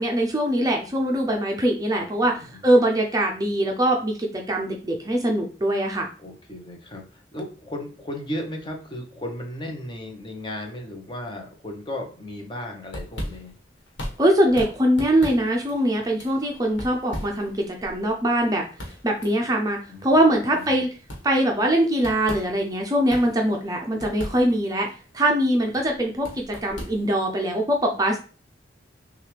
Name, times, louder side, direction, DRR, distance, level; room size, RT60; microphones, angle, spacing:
voice 1, 0.0-2.3 2.6-6.1 14.2-18.6 19.0-20.9 21.2-24.9 25.1-28.2, right 1 dB, 20° right, 1 dB, 0.5 m, -22 dB
voice 2, 2.0-2.6 6.2-13.6 19.9-20.9, left 1 dB, 25° left, 2 dB, 0.8 m, -36 dB
sound 1, 12.9-27.5, equal, 85° left, 1.4 m, -39 dB
6.3 x 2.4 x 3.3 m, 0.38 s
head